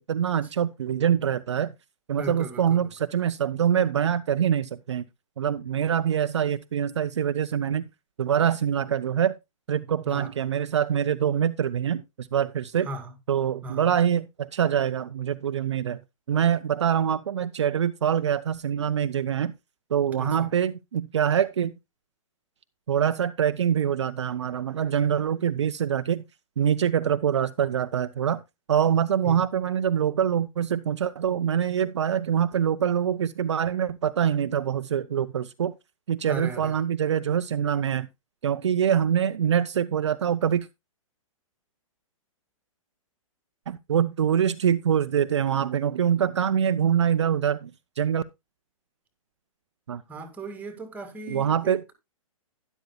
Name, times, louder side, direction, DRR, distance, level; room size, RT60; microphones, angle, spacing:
voice 1, 0.1-1.7 2.1-5.0 5.4-7.8 8.2-9.3 9.7-12.9 13.3-16.0 16.3-19.5 19.9-21.8 22.9-26.2 26.6-28.4 28.7-35.7 36.1-38.1 38.4-40.7 43.7-48.2 49.9-50.0 51.3-51.8, right 8 dB, 55° right, 0.5 m, -24 dB
voice 2, 2.2-2.9 10.0-10.3 12.8-13.1 13.6-13.9 20.2-20.5 29.2-29.4 36.3-36.7 50.1-51.9, right 1 dB, 10° right, 1.9 m, -37 dB
12.5 x 11.0 x 2.3 m
figure-of-eight pair, 120°, 18 cm